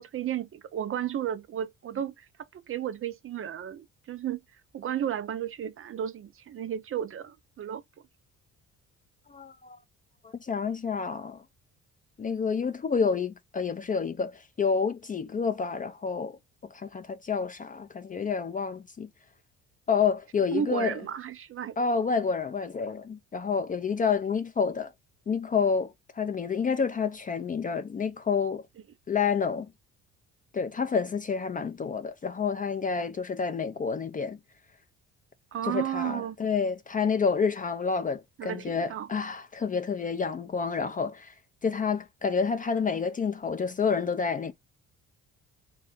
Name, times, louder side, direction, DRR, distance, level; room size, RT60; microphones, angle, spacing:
voice 1, 0.0-2.3 2.5-4.4 4.7-7.8 20.5-21.7 35.5-36.4 38.4-39.1, right 9 dB, 40° right, 0.4 m, -33 dB
voice 2, 9.3-9.8 10.2-11.4 12.2-16.4 16.7-19.1 19.9-21.0 21.8-24.9 25.3-28.6 29.1-29.7 30.5-34.4 35.6-41.3 41.6-44.5, left 5 dB, 25° left, 0.3 m, -29 dB
3.4 x 2.2 x 3.6 m
supercardioid pair, 75°, 34 cm